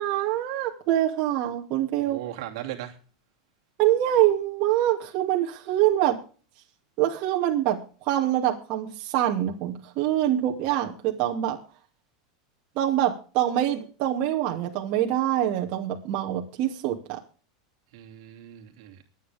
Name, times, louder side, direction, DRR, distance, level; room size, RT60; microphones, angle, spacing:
voice 1, 0.0-2.2 3.8-6.2 7.0-11.6 12.8-17.2, right 12 dB, 45° right, 0 dB, 2.6 m, -25 dB
voice 2, 2.0-3.0 17.9-19.0, right 13 dB, 65° right, 3 dB, 2.7 m, -38 dB
23.5 x 9.2 x 3.6 m, 0.38 s
supercardioid pair, 145°, 3 cm